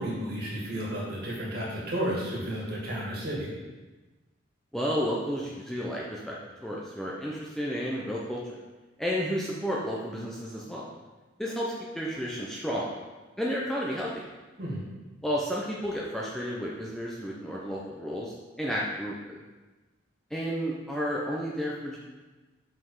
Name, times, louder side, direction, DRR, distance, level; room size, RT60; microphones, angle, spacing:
voice 1, 0.0-3.5 14.6-14.8, equal, 50° right, -4 dB, 2.0 m, -32 dB
voice 2, 4.7-6.3 6.6-8.6 9.0-10.8 11.4-12.9 13.4-14.2 15.2-19.2 20.3-22.0, equal, ahead, -5 dB, 0.6 m, -32 dB
5.8 x 5.0 x 4.8 m, 1.2 s
head